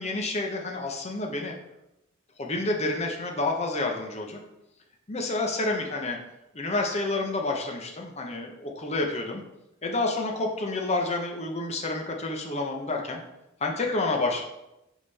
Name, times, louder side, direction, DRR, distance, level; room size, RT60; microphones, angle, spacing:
voice 1, 0.0-1.5 2.4-4.4 5.1-6.2 6.5-9.4 9.8-13.2 13.6-14.4, left 2 dB, 35° left, 1 dB, 0.8 m, -29 dB
5.4 x 5.2 x 4.1 m, 0.88 s
head